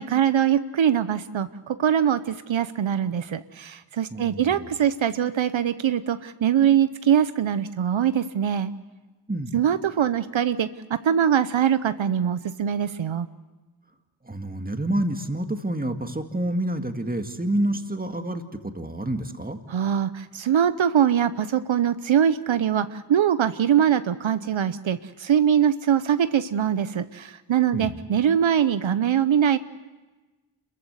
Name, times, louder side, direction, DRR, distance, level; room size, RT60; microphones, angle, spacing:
voice 1, 0.0-8.7 9.5-13.3 19.7-29.6, right 9 dB, 70° right, 12 dB, 0.8 m, -22 dB
voice 2, 4.1-4.7 9.3-9.6 14.2-19.6 27.7-28.0, right 1 dB, 20° right, 6 dB, 2.0 m, -28 dB
26.5 x 14.5 x 8.0 m, 1.2 s
cardioid pair, 50°, 49 cm